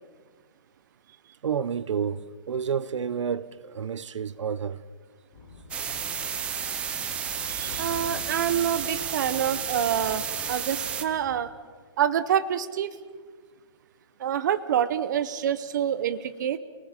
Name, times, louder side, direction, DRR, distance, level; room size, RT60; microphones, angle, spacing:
voice 1, 1.4-4.8, right 7 dB, 80° right, 0.9 m, -30 dB
sound 1, 5.3-11.4, left 2 dB, 20° left, 5.3 m, -46 dB
sound 2, 5.7-11.0, right 7 dB, 5° right, 0.6 m, -32 dB
voice 2, 7.5-11.5 12.0-12.9 14.2-16.6, right 9 dB, 40° right, 0.8 m, -27 dB
29.5 x 19.0 x 5.9 m
hypercardioid pair, 175°, 15 cm